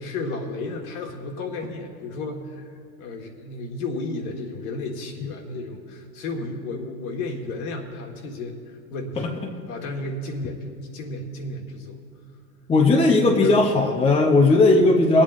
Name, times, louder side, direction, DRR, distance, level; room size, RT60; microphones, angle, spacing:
voice 1, 0.0-2.7 3.0-9.3 9.7-12.0 13.1-13.6, left 2 dB, 60° left, 3 dB, 1.6 m, -33 dB
voice 2, 12.7-15.2, left 2 dB, 10° left, 2 dB, 0.7 m, -17 dB
24.0 x 8.5 x 2.5 m, 2.3 s
hypercardioid pair, 110°, 50 cm